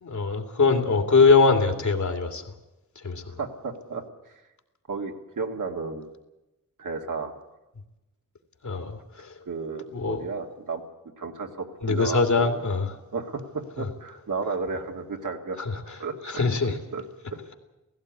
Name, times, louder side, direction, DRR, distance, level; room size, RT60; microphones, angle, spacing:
voice 1, 0.0-2.4 3.0-3.4 8.6-9.3 9.9-10.2 11.8-12.9 13.8-13.9 15.6-16.0 16.2-16.8, left 4 dB, 65° left, 2.7 m, -22 dB
voice 2, 3.4-4.0 4.9-6.1 6.8-7.3 9.5-10.8 11.2-12.5 13.1-15.6 16.0-16.2 16.6-17.0, right 4 dB, 75° right, 2.5 m, -33 dB
16.5 x 16.5 x 9.7 m
wide cardioid pair, 105°, 32 cm